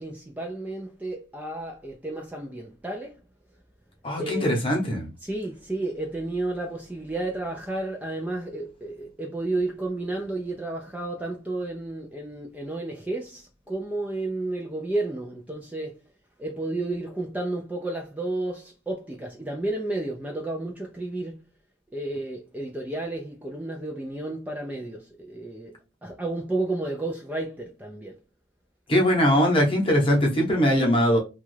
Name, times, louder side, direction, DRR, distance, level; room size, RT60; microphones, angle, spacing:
voice 1, 0.0-3.2 4.2-4.6 5.2-15.9 16.4-21.4 21.9-25.7 26.0-28.1 30.1-30.2, right 2 dB, 10° right, 0.4 m, -32 dB
voice 2, 4.0-5.1 28.9-31.2, equal, 30° left, 0.9 m, -21 dB
3.0 x 2.3 x 3.1 m
head